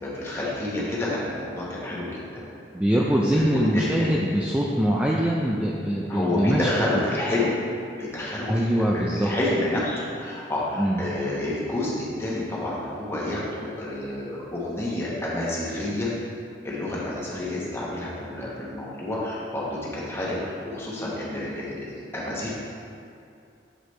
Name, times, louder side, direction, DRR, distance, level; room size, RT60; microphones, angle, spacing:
voice 1, 0.0-2.4 3.3-4.1 6.1-7.6 7.9-16.1 16.6-22.5, left 1 dB, 15° left, -6 dB, 1.2 m, -29 dB
voice 2, 2.7-6.7 8.5-9.3 10.8-11.0, equal, 5° right, -3 dB, 0.3 m, -23 dB
7.8 x 4.9 x 3.2 m, 2.5 s
head